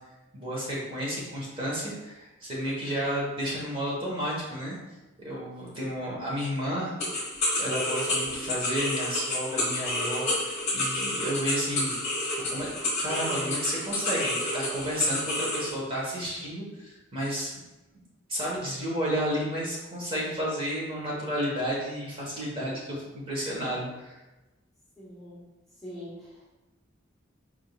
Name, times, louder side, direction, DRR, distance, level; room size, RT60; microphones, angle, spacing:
voice 1, 0.3-4.8 5.2-6.9 7.6-11.9 12.5-12.7 13.0-17.6 18.3-24.2, equal, 30° right, -5 dB, 1.3 m, -32 dB
sound 1, 7.0-15.7, left 1 dB, 35° left, 1.3 m, -29 dB
voice 2, 25.0-25.4 25.8-26.5, equal, ahead, -10 dB, 0.9 m, -43 dB
4.7 x 3.7 x 2.4 m, 1.1 s
head